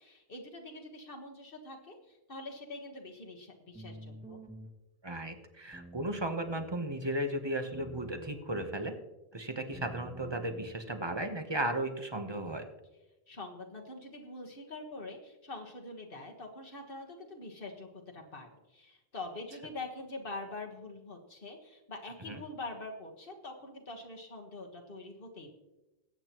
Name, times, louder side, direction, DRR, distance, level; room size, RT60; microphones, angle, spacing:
voice 1, 0.0-4.4 13.3-25.5, left 2 dB, 60° left, 1 dB, 1.6 m, -44 dB
sound 1, 3.7-4.7 5.7-6.7 7.7-8.7 9.7-10.7, right 1 dB, 10° right, 1.7 m, -49 dB
voice 2, 5.0-9.0 9.3-12.7 22.3-22.4, right 1 dB, 25° right, 6 dB, 1.1 m, -35 dB
20.5 x 8.8 x 3.0 m, 1.0 s
omnidirectional pair, 1.1 m